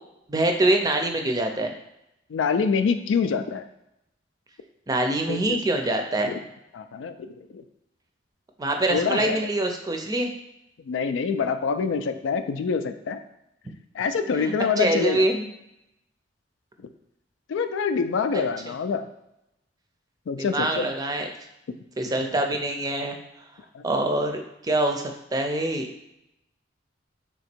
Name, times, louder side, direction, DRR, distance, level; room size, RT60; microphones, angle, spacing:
voice 1, 0.3-1.7 4.9-6.3 8.6-10.3 14.3-15.5 18.3-18.4 20.4-21.3 22.0-23.2 23.8-25.0 25.3-25.9, right 1 dB, 20° right, 4 dB, 0.5 m, -24 dB
voice 2, 2.3-3.6 5.3-5.6 6.3-6.4 6.7-7.6 8.9-9.4 10.9-13.2 14.0-15.2 17.5-19.1 20.3-20.9 21.7-21.8 23.7-23.8, left 5 dB, 85° left, 9 dB, 0.4 m, -26 dB
3.5 x 2.9 x 4.4 m, 0.84 s
head